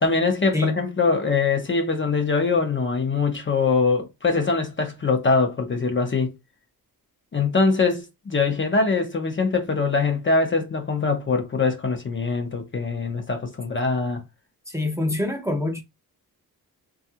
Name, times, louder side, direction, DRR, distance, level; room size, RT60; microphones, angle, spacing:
voice 1, 0.0-6.3 7.3-14.2, left 4 dB, 30° left, 0.7 m, -23 dB
voice 2, 14.7-15.8, left 2 dB, 10° right, 0.7 m, -25 dB
3.2 x 2.4 x 2.8 m
cardioid pair, 85°, 38 cm